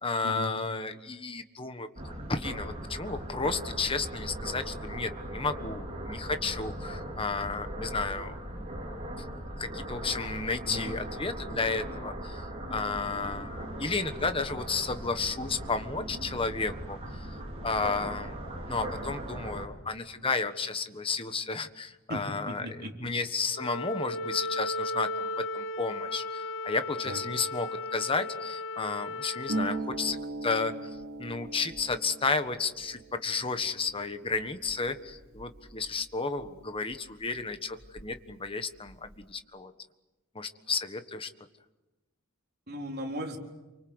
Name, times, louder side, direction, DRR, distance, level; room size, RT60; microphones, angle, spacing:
voice 1, 0.0-8.4 9.6-12.4 12.7-18.3 18.7-30.2 30.4-30.9 31.2-39.7 40.3-41.3, left 4 dB, 25° left, 9 dB, 1.4 m, -32 dB
sound 1, 2.0-19.7, right 1 dB, 30° right, 4.9 m, -39 dB
voice 2, 10.6-11.0 22.1-23.1 27.0-27.2 42.7-43.4, equal, 50° right, 1 dB, 4.1 m, -37 dB
Wind instrument woodwind instrument, 23.5-29.8, left 2 dB, 60° left, 1.1 m, -35 dB
Harp, 29.5-37.0 37.2-38.3 38.6-39.2, right 2 dB, 80° right, 4.3 m, -40 dB
28.5 x 25.0 x 8.0 m, 1.1 s
head